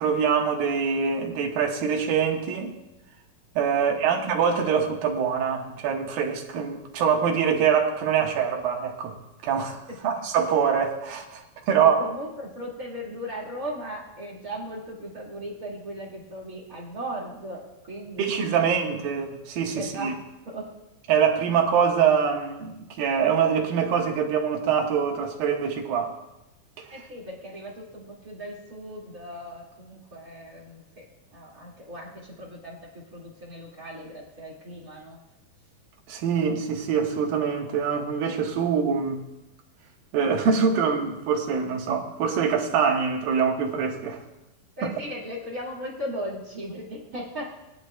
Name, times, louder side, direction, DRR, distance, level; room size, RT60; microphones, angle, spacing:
voice 1, 0.0-2.7 3.6-9.1 9.4-12.0 18.2-20.1 21.1-26.2 36.1-39.2 40.1-44.2, right 7 dB, 80° right, 3.0 m, -24 dB
voice 2, 3.8-4.1 9.9-10.1 11.8-19.1 19.7-20.2 20.4-20.8 26.9-31.1 31.3-35.2 44.8-47.7, equal, 30° right, 1.9 m, -37 dB
20.5 x 11.0 x 2.2 m
omnidirectional pair, 4.2 m